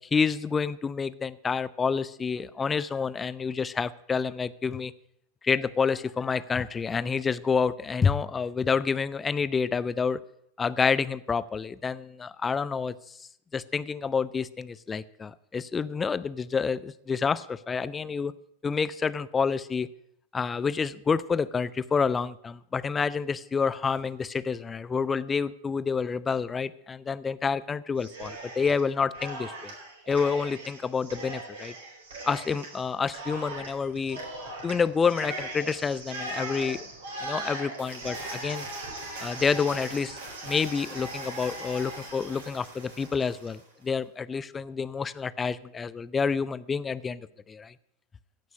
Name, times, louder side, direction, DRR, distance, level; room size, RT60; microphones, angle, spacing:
voice 1, 0.1-4.9 5.4-10.2 10.6-12.9 13.5-18.3 18.6-19.9 20.3-29.7 30.1-31.7 32.2-34.2 34.6-36.8 37.2-38.7 39.2-47.7, left 5 dB, 15° left, 17 dB, 0.5 m, -28 dB
Cheering, 28.0-28.8 29.1-43.6, right 2 dB, 65° right, 4.0 m, -39 dB
16.5 x 6.2 x 8.4 m, 0.76 s
figure-of-eight pair, 90°, 0 cm